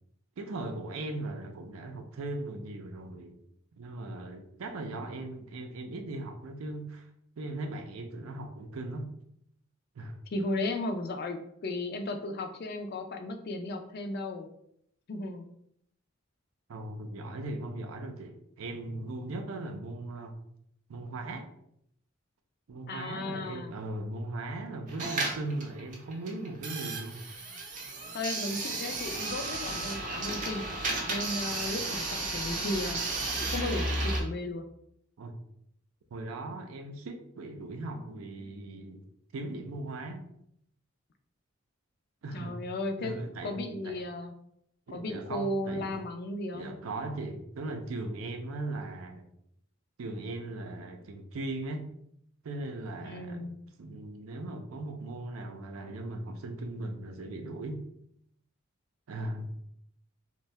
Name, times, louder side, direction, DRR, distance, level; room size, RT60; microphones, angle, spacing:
voice 1, 0.4-3.4 3.8-7.1 7.4-9.1 10.0-10.2 16.7-20.3 20.9-21.5 22.7-27.2 35.2-35.3 36.1-39.0 39.3-40.2 42.2-42.6 43.0-44.0 44.9-46.0 46.5-49.2 50.0-51.9 52.4-53.5 53.8-57.8 59.1-59.5, right 2 dB, 85° right, 5 dB, 0.5 m, -38 dB
voice 2, 10.3-14.5 15.1-15.5 22.9-23.7 28.1-30.6 31.1-33.0 33.4-34.7 42.3-43.1 43.4-44.3 44.9-46.7 53.0-53.6, left 2 dB, 50° left, 6 dB, 0.4 m, -35 dB
sound 1, 24.9-34.2, right 2 dB, 40° right, 0.6 m, -33 dB
2.6 x 2.2 x 3.2 m, 0.73 s
head